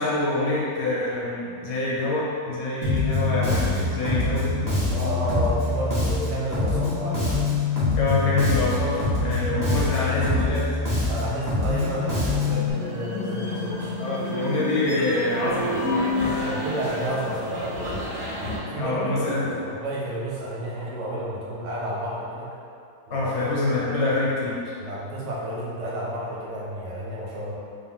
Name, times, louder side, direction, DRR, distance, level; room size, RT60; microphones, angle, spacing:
voice 1, 0.0-4.5 8.0-10.7 14.0-16.1 18.7-19.6 23.1-24.7, left 2 dB, 75° left, -6 dB, 1.4 m, -26 dB
Bass guitar, 2.8-12.7, left 2 dB, 25° right, 0.4 m, -24 dB
voice 2, 4.9-7.4 9.5-9.6 11.0-13.9 16.4-18.0 18.6-22.5 23.1-23.4 24.8-27.5, right 1 dB, 70° right, -6 dB, 1.3 m, -31 dB
sound 1, 11.6-18.6, left 2 dB, 55° right, 1.8 m, -30 dB
4.2 x 2.2 x 3.5 m, 2.5 s
omnidirectional pair, 2.0 m